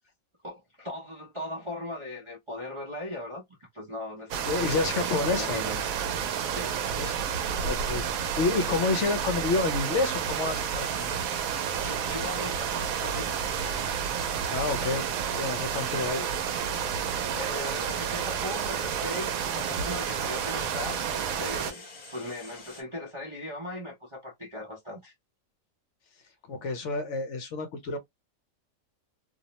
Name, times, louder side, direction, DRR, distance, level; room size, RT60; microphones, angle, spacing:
voice 1, 0.4-3.4 3.7-5.8 6.5-6.8 11.7-13.3 17.0-25.1, left 1 dB, 40° right, 0.4 m, -39 dB
sound 1, 4.3-21.7, right 8 dB, 85° right, 1.0 m, -30 dB
voice 2, 4.4-5.6 7.0-7.2 7.5-11.4 14.5-16.3 26.5-28.0, left 3 dB, 65° left, 0.9 m, -29 dB
sound 2, 10.4-22.8, left 3 dB, 45° left, 0.9 m, -47 dB
2.6 x 2.0 x 2.8 m
omnidirectional pair, 1.4 m